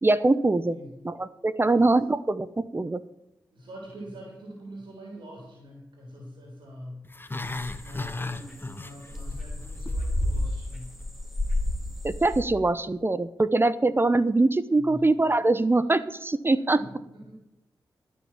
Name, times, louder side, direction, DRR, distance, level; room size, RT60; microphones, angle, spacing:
voice 1, 0.0-0.8 1.0-3.0 12.0-16.8, right 2 dB, 25° right, 15 dB, 0.7 m, -23 dB
voice 2, 3.5-7.4 7.8-10.9 14.7-15.0 16.7-17.3, equal, 70° right, -1 dB, 3.5 m, -44 dB
Growling, 7.0-9.4 9.6-10.0 10.4-10.5, left 3 dB, 25° left, 1.0 m, -35 dB
sound 1, 7.4-12.4, left 1 dB, ahead, 2.9 m, -31 dB
12.5 x 6.3 x 7.4 m, 0.90 s
supercardioid pair, 40°, 8 cm